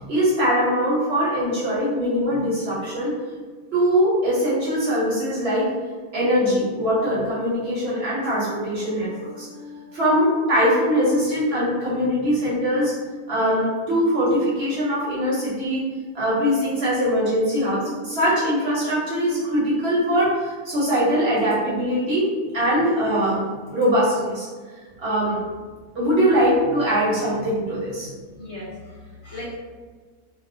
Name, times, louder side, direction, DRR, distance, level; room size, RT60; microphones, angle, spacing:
voice 1, 0.0-3.1 3.7-5.7 6.1-12.9 13.3-15.8 16.1-22.3 22.5-24.5 25.0-25.4 25.9-28.1, equal, 55° right, -8 dB, 0.8 m, -22 dB
voice 2, 28.3-29.6, left 1 dB, 60° left, -7 dB, 1.0 m, -37 dB
2.6 x 2.1 x 2.5 m, 1.5 s
omnidirectional pair, 1.5 m